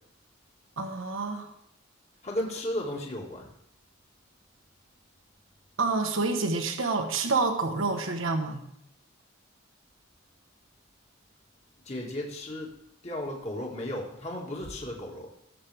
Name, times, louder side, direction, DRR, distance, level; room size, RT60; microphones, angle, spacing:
voice 1, 0.8-1.5 5.8-8.6, right 3 dB, 80° right, 4 dB, 1.2 m, -28 dB
voice 2, 2.2-3.5 11.8-12.7 13.0-15.3, left 1 dB, 35° left, -1 dB, 2.0 m, -34 dB
19.0 x 7.5 x 3.5 m, 0.73 s
head